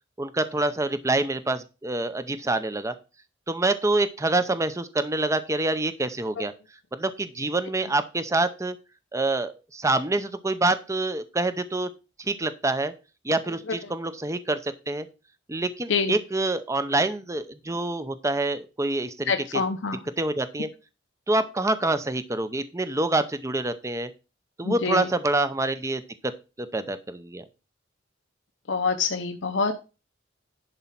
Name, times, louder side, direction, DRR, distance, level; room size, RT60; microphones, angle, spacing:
voice 1, 0.2-2.9 3.5-6.5 6.9-8.8 9.1-11.9 12.2-12.9 13.2-15.1 15.5-19.6 20.2-20.7 21.3-24.1 24.6-26.3 26.6-27.4, right 2 dB, 15° right, 11 dB, 0.6 m, -26 dB
voice 2, 19.3-20.0 24.6-25.1 28.7-29.8, left 4 dB, 70° left, 6 dB, 0.8 m, -26 dB
11.0 x 4.3 x 5.8 m, 0.30 s
head